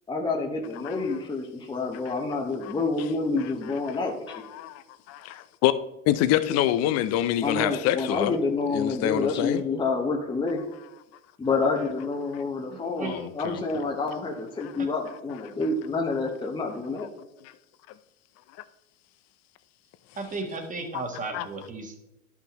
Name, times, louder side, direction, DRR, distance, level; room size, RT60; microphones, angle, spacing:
voice 1, 0.1-4.4 7.4-10.6 11.4-17.1, left 3 dB, 15° left, 1.0 m, -28 dB
voice 2, 4.3-5.7 6.1-8.3 8.7-9.6 13.0-13.9 14.6-14.7 21.3-21.5, left 12 dB, 40° left, 0.6 m, -26 dB
voice 3, 12.7-13.3 14.8-14.9 20.1-22.0, right 3 dB, 20° right, 1.5 m, -35 dB
11.0 x 5.8 x 3.0 m
hypercardioid pair, 105°, 38 cm